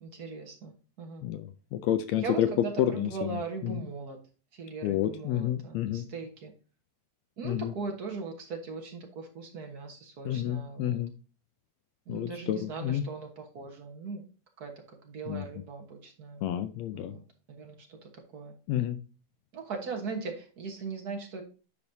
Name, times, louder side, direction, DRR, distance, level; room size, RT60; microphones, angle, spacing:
voice 1, 0.0-1.2 2.2-4.2 4.5-6.5 7.4-11.0 12.1-14.2 14.6-16.4 16.9-17.2 17.6-18.5 19.5-21.4, right 4 dB, 50° right, 3 dB, 1.2 m, -39 dB
voice 2, 1.2-2.5 2.8-3.1 3.6-3.8 4.8-6.1 7.4-7.7 10.2-11.1 12.1-13.0 15.3-15.4 16.4-17.1 18.7-19.0, left 12 dB, 75° left, 10 dB, 1.7 m, -29 dB
10.5 x 5.3 x 2.7 m, 0.35 s
omnidirectional pair, 3.4 m